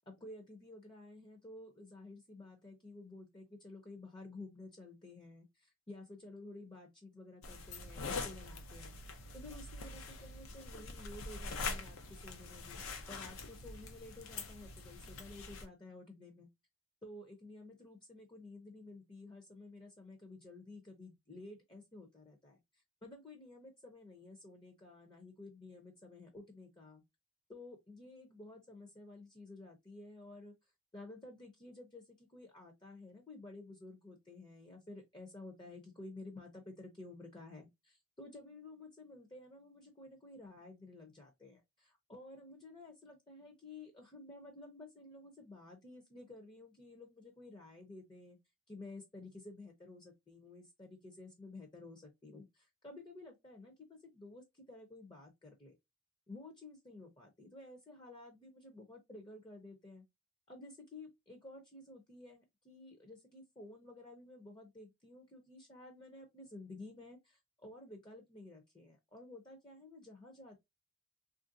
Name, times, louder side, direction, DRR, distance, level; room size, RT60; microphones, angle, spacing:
voice 1, 0.1-9.0 9.3-12.8 13.1-16.5 17.0-22.6 23.0-27.0 27.5-30.5 30.9-48.4 48.7-55.8 56.3-60.1 60.5-70.6, left 2 dB, 25° left, 0.6 m, -53 dB
sound 1, 7.4-15.6, left 3 dB, 80° left, 0.6 m, -44 dB
3.1 x 2.5 x 2.6 m
head